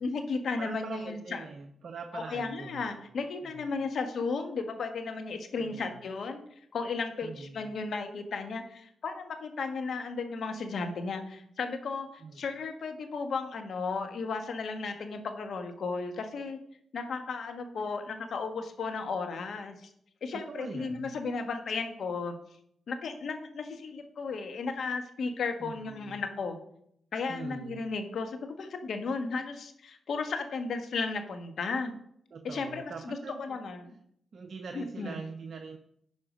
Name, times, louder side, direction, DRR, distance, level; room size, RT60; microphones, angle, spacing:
voice 1, 0.0-1.4 2.1-6.4 6.7-16.6 16.9-19.9 20.2-22.4 22.9-26.6 27.1-31.9 32.4-33.9 34.7-35.2, left 4 dB, 70° left, 6 dB, 1.4 m, -34 dB
voice 2, 0.6-2.9 3.4-3.7 5.6-6.0 7.2-7.7 12.2-12.5 20.3-21.1 25.6-26.2 27.3-27.8 32.3-33.6 34.3-35.8, right 5 dB, 65° right, 6 dB, 0.7 m, -43 dB
11.0 x 4.8 x 5.1 m, 0.69 s
cardioid pair, 60°, 0 cm